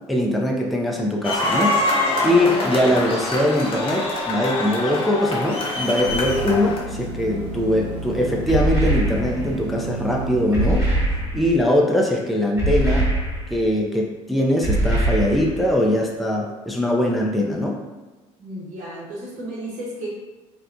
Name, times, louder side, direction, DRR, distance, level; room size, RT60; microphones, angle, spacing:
voice 1, 0.1-1.8 2.2-10.9 11.3-13.1 13.5-17.8, left 1 dB, ahead, -1 dB, 0.4 m, -21 dB
sound 1, 1.2-6.8, left 2 dB, 40° left, 0.7 m, -24 dB
sound 2, 5.7-11.6, right 2 dB, 75° right, 0.4 m, -32 dB
sound 3, 8.5-9.6 10.5-11.6 12.6-13.7 14.6-15.7, right 1 dB, 20° right, 1.3 m, -22 dB
voice 2, 18.4-20.1, right 1 dB, 55° right, -5 dB, 1.1 m, -33 dB
2.8 x 2.1 x 2.5 m, 1.2 s
hypercardioid pair, 60°, 15 cm